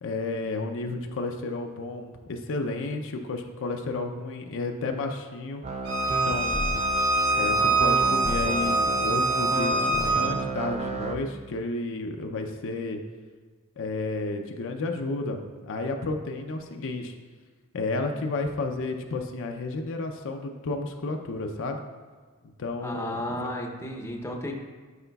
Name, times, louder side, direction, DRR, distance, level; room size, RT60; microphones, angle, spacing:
voice 1, 0.0-5.6 6.1-6.6 7.3-13.0 13.8-17.1 17.7-21.8 22.6-23.5, left 3 dB, 60° left, 4 dB, 0.5 m, -32 dB
sound 1, 5.6-11.2, right 3 dB, 30° right, 0.5 m, -31 dB
Bowed string instrument, 5.9-10.3, right 2 dB, 90° right, 0.9 m, -24 dB
voice 2, 22.8-24.5, left 1 dB, 10° left, 1 dB, 0.7 m, -33 dB
11.5 x 4.9 x 2.3 m, 1.5 s
head